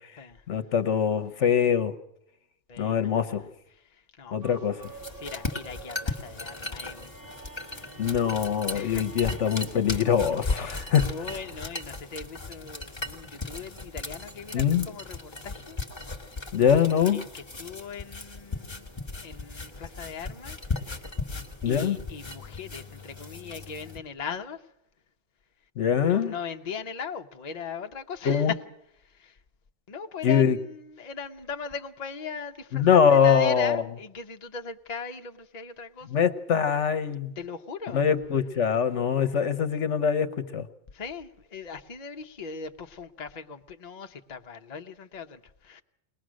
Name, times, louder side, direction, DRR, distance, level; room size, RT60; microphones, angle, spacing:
voice 1, 0.5-1.9 2.8-3.5 4.3-4.9 8.0-11.1 14.5-14.9 16.5-17.2 21.6-22.0 25.8-26.3 28.2-28.5 30.2-30.6 32.7-33.8 36.1-37.3 37.9-40.7, left 7 dB, 70° left, 1.3 m, -23 dB
voice 2, 2.7-3.2 3.9-4.5 5.2-7.2 8.7-9.4 10.4-15.8 17.1-18.9 19.2-20.6 21.6-24.6 26.0-28.6 29.0-29.4 29.9-36.3 37.4-38.0 40.9-45.8, left 6 dB, 35° left, 0.9 m, -39 dB
sound 1, 4.4-11.7, right 3 dB, 85° right, 2.8 m, -48 dB
sound 2, 4.8-24.0, left 3 dB, 20° left, 1.8 m, -37 dB
21.5 x 20.0 x 6.3 m
omnidirectional pair, 1.3 m